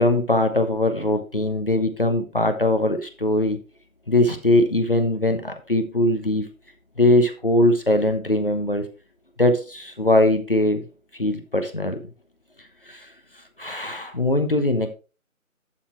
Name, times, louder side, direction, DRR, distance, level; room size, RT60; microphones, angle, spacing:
voice 1, 0.0-3.6 4.1-6.5 7.0-8.8 9.4-10.8 11.1-12.0 12.9-13.1 13.6-14.9, left 1 dB, 40° left, 6 dB, 1.0 m, -21 dB
11.5 x 4.2 x 4.4 m, 0.33 s
figure-of-eight pair, 165°, 43 cm